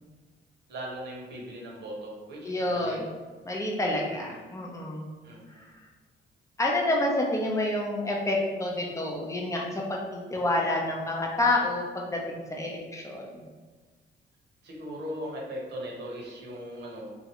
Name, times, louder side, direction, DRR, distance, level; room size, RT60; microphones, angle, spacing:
voice 1, 0.7-3.0 4.1-4.4 5.2-5.7 14.6-17.1, equal, 60° right, -3 dB, 1.0 m, -39 dB
voice 2, 2.4-3.1 3.4-5.1 5.6-5.7 6.6-13.4, left 2 dB, 15° left, -1 dB, 0.6 m, -28 dB
3.0 x 2.4 x 2.9 m, 1.4 s
cardioid pair, 90°, 20 cm